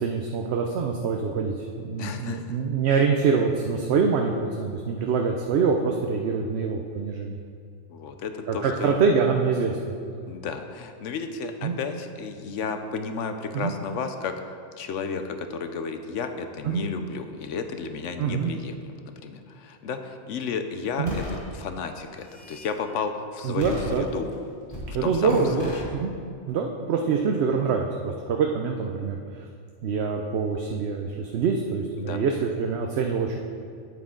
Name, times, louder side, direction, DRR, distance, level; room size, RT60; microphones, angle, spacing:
voice 1, 0.0-7.4 8.5-10.3 11.6-11.8 13.5-13.7 16.6-16.9 18.2-18.5 21.0-21.2 23.4-24.0 24.9-26.1 26.5-29.4 29.8-33.4, right 5 dB, 65° right, 2 dB, 0.9 m, -25 dB
voice 2, 2.0-2.6 2.9-3.0 7.9-9.0 10.3-14.3 14.7-24.3 24.9-25.7 32.0-32.2, left 5 dB, 80° left, 7 dB, 1.0 m, -33 dB
sound 1, 21.1-21.4 22.1-22.7 23.6-24.3 24.7-24.9 25.3-25.8, left 1 dB, 45° left, 2.7 m, -34 dB
9.2 x 8.4 x 3.8 m, 2.4 s
omnidirectional pair, 1.3 m